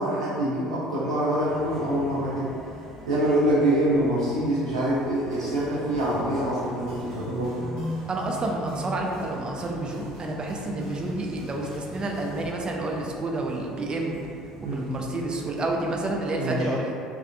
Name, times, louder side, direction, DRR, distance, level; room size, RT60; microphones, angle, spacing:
voice 1, 0.0-2.5 3.1-7.8 14.6-14.8 16.4-16.7, right 1 dB, 90° right, -9 dB, 0.4 m, -25 dB
sound 1, 1.4-16.3, equal, 5° left, 0.9 m, -43 dB
sound 2, 5.3-12.5, equal, 60° right, 0.9 m, -44 dB
voice 2, 8.1-14.2 14.7-16.9, right 2 dB, 30° right, 0 dB, 0.4 m, -29 dB
2.4 x 2.2 x 2.5 m, 2.5 s
hypercardioid pair, 60°, 3 cm